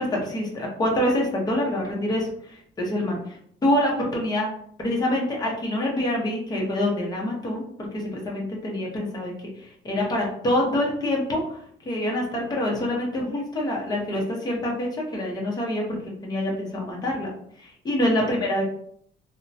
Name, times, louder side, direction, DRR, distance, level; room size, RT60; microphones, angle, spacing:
voice 1, 0.0-3.2 3.6-4.5 4.8-17.3 17.6-18.6, left 1 dB, 25° left, -2 dB, 0.7 m, -26 dB
2.9 x 2.1 x 2.6 m, 0.65 s
cardioid pair, 110°, 17 cm